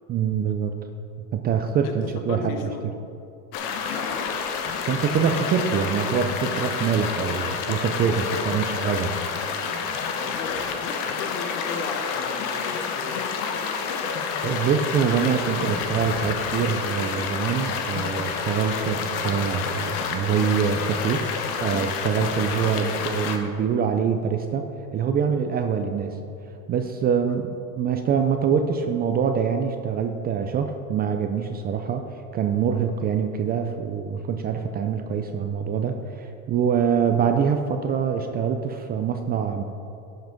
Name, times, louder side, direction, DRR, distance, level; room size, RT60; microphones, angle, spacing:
voice 1, 0.1-0.7 1.3-2.9 4.9-9.2 14.4-21.3 21.6-24.7 24.9-26.2 26.7-39.6, right 7 dB, 25° right, 6 dB, 0.3 m, -25 dB
voice 2, 1.8-2.9 3.9-4.3 10.2-13.8 27.3-27.4, left 5 dB, 75° left, 6 dB, 1.3 m, -36 dB
sound 1, 3.5-23.4, left 6 dB, 55° left, 1.1 m, -29 dB
11.0 x 5.9 x 5.1 m, 2.5 s
supercardioid pair, 115°, 44 cm